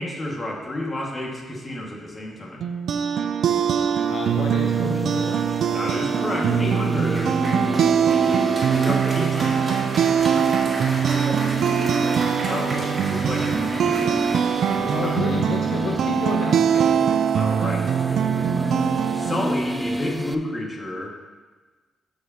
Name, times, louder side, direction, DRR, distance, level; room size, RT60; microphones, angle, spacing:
voice 1, 0.0-2.7 5.7-7.4 8.7-10.1 12.5-14.2 14.7-15.3 17.3-18.7 19.1-21.1, left 1 dB, 25° left, -2 dB, 1.9 m, -31 dB
sound 1, 2.6-19.5, right 7 dB, 70° right, 0.3 m, -22 dB
sound 2, 3.4-20.4, equal, 5° right, 0.4 m, -32 dB
voice 2, 4.1-5.6 8.2-8.8 10.3-11.7 14.9-17.2, left 5 dB, 65° left, 1 dB, 0.6 m, -32 dB
Applause, 7.1-16.5, right 1 dB, 25° right, 2.3 m, -34 dB
13.0 x 4.9 x 2.9 m, 1.3 s
cardioid pair, 95°, 0 cm